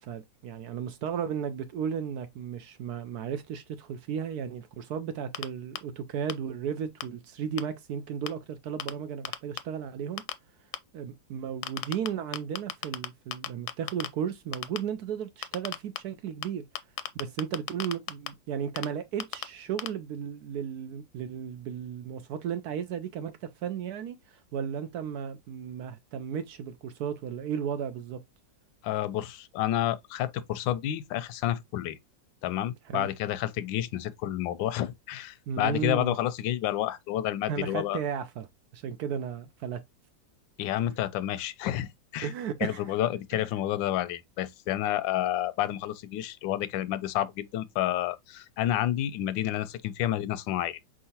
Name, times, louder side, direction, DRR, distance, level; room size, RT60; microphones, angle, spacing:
voice 1, 0.0-10.2 10.9-16.6 17.1-28.2 32.9-33.1 35.5-36.2 37.5-38.5 38.7-39.8 42.2-42.9 43.3-43.5, right 8 dB, 70° right, 0.9 m, -34 dB
sound 1, 5.3-5.4 5.7-5.8 6.3-6.4 7.0-7.1 7.6-7.7 8.3-8.4 8.8-8.9 9.2-9.6 10.2-10.3 10.7-10.8 11.6-12.1 12.3-13.1 13.3-14.1 14.5-14.8 15.4-16.0 16.4-16.5 16.7-18.3 18.8-18.9 19.2-19.4 19.8-19.9, left 12 dB, 70° left, 1.0 m, -32 dB
voice 2, 28.8-32.0 32.4-38.0 40.6-42.3 42.6-50.8, left 12 dB, 85° left, 1.3 m, -30 dB
4.4 x 3.7 x 2.8 m
omnidirectional pair, 2.0 m